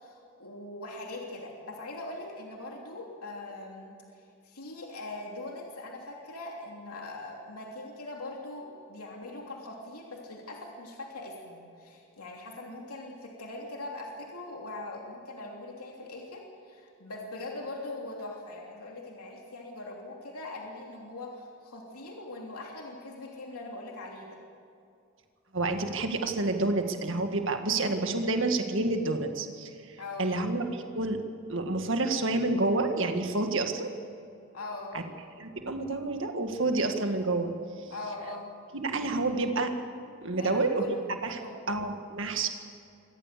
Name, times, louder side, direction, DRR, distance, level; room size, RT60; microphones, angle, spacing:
voice 1, 0.0-4.0 4.4-24.4 30.0-30.3 34.5-35.0 37.0-37.1 37.9-38.5 40.4-40.9 41.2-41.6, left 2 dB, 90° left, -1 dB, 3.1 m, -41 dB
voice 2, 25.5-31.2 31.5-33.9 34.9-35.0 35.4-37.9 38.7-39.7 40.2-41.4 41.7-42.5, right 2 dB, 60° right, 5 dB, 1.9 m, -29 dB
25.0 x 18.0 x 6.9 m, 2.5 s
head